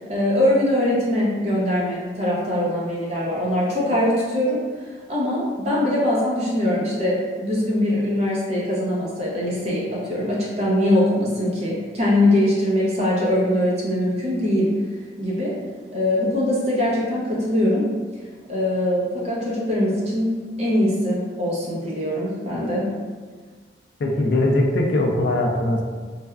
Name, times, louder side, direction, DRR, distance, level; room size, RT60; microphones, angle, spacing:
voice 1, 0.1-14.7 15.2-15.6 15.9-17.9 18.5-22.9, left 1 dB, 35° right, -5 dB, 0.7 m, -22 dB
voice 2, 24.0-25.8, left 1 dB, 60° left, 2 dB, 0.3 m, -20 dB
3.3 x 2.2 x 2.3 m, 1.5 s
head